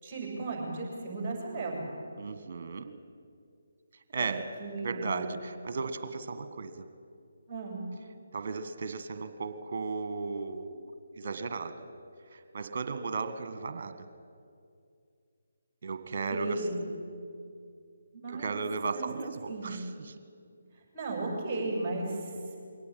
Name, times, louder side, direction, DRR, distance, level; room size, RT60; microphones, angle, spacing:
voice 1, 0.0-1.9 4.2-4.3 4.6-5.2 7.5-7.9 16.3-16.9 18.1-18.6 18.9-19.1 19.5-19.9 20.9-22.6, right 2 dB, 20° right, -2 dB, 7.3 m, -35 dB
voice 2, 2.2-2.9 4.1-4.5 4.8-6.9 8.3-10.9 11.2-11.8 12.3-14.1 15.8-16.7 18.3-20.2, right 4 dB, 45° right, 10 dB, 1.7 m, -35 dB
22.5 x 17.5 x 8.9 m, 2.4 s
figure-of-eight pair, 145°, 0 cm